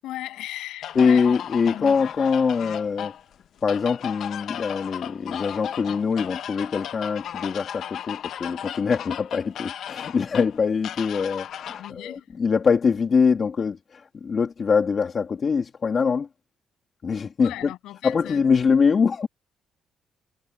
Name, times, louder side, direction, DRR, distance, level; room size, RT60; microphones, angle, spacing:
voice 1, 0.0-1.3 1.6-1.9 11.8-12.3 17.4-18.4, left 15 dB, 90° left, 7.7 m, -37 dB
sound 1, 0.8-11.9, left 10 dB, 70° left, 1.2 m, -35 dB
voice 2, 0.9-3.1 3.6-16.3 17.0-17.5 18.0-19.3, left 5 dB, 45° left, 2.4 m, -23 dB
cardioid pair, 90°, 0 cm